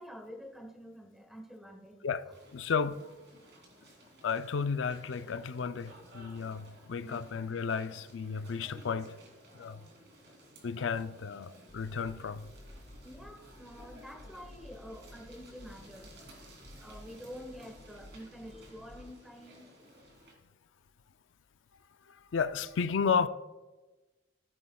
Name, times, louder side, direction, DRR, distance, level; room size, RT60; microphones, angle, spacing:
voice 1, 0.0-2.0 7.0-7.2 9.6-9.9 13.0-19.7, equal, ahead, 1.2 m, -48 dB
sound 1, 2.3-20.3, right 1 dB, 65° right, 3.0 m, -56 dB
voice 2, 2.5-3.0 4.2-9.2 9.5-9.9 10.6-12.5 22.1-23.3, left 6 dB, 80° left, 0.5 m, -33 dB
sound 2, 11.7-19.1, left 1 dB, 25° left, 0.5 m, -54 dB
16.0 x 8.4 x 2.3 m
head